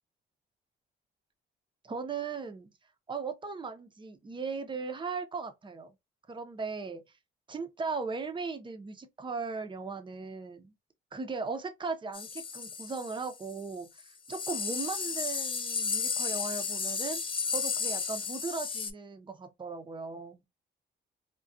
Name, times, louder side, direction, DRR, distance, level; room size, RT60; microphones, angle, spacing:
voice 1, 1.8-2.7 3.1-5.9 6.3-7.0 7.5-10.7 11.1-17.2 17.5-20.4, right 4 dB, 25° right, 0.6 m, -38 dB
sound 1, 12.1-13.6 14.0-14.1 14.3-18.9, left 6 dB, 25° left, 0.4 m, -33 dB
2.3 x 2.2 x 2.4 m
cardioid pair, 90°, 20 cm